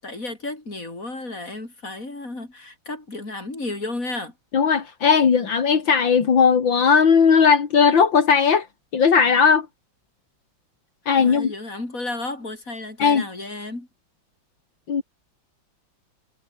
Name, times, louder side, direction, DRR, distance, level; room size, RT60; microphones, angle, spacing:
voice 1, 0.0-4.3 11.0-13.9, left 2 dB, 45° left, 6.5 m, -33 dB
voice 2, 4.5-8.7 8.9-9.7 11.1-11.5 13.0-13.2 14.9-15.0, left 6 dB, 75° left, 3.0 m, -17 dB
omnidirectional pair, 2.1 m